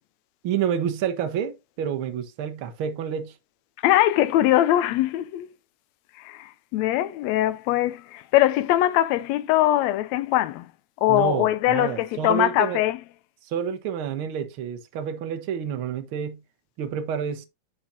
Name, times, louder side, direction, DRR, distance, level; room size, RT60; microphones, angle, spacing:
voice 1, 0.4-3.3 11.1-12.8 13.5-16.4 16.8-17.5, right 8 dB, 55° right, 1.7 m, -29 dB
voice 2, 3.8-5.5 6.2-10.7 11.0-13.0, left 14 dB, 80° left, 1.8 m, -22 dB
10.0 x 6.2 x 2.8 m
omnidirectional pair, 3.5 m